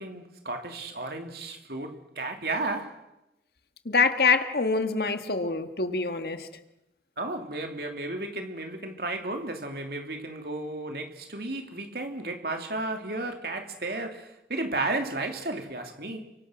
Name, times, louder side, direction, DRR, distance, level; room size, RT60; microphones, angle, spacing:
voice 1, 0.0-3.1 7.2-16.3, right 2 dB, 60° right, 2.9 m, -33 dB
voice 2, 3.9-6.5, left 4 dB, 60° left, 1.8 m, -25 dB
30.0 x 24.5 x 6.3 m
head